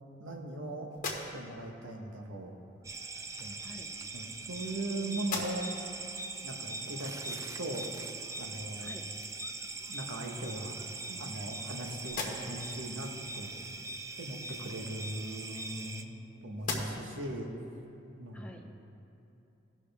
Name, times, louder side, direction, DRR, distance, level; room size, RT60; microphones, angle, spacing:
voice 1, 0.2-2.5 3.4-3.6 4.1-5.7 6.4-8.1 8.4-9.0 9.9-10.8 11.1-13.5 14.2-16.1 16.4-17.5 18.1-18.5, right 1 dB, 85° right, 2 dB, 1.2 m, -39 dB
sound 1, 0.9-1.7 2.9-3.0 4.0-4.8 5.2-5.9 6.4-6.5 9.2-9.3 9.7-10.4 11.0-11.7 12.0-12.8 14.8-16.2 16.6-17.2, left 3 dB, 45° left, 1.4 m, -41 dB
sound 2, 2.8-16.0, right 3 dB, 15° right, 0.4 m, -41 dB
voice 2, 3.6-3.9 4.6-5.3 8.8-9.1 18.3-18.7, left 1 dB, 5° left, 1 dB, 0.7 m, -50 dB
17.0 x 6.1 x 3.5 m, 2.9 s
head